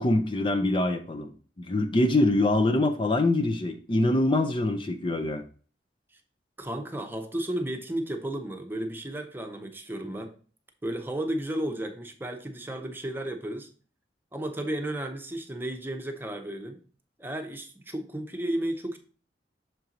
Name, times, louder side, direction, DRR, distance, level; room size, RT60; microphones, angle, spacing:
voice 1, 0.0-5.4, left 2 dB, 30° left, 6 dB, 0.5 m, -24 dB
voice 2, 6.6-10.3 10.8-13.7 14.3-16.8 17.2-19.0, right 1 dB, 10° right, 5 dB, 0.8 m, -33 dB
6.7 x 4.5 x 3.8 m, 0.40 s
head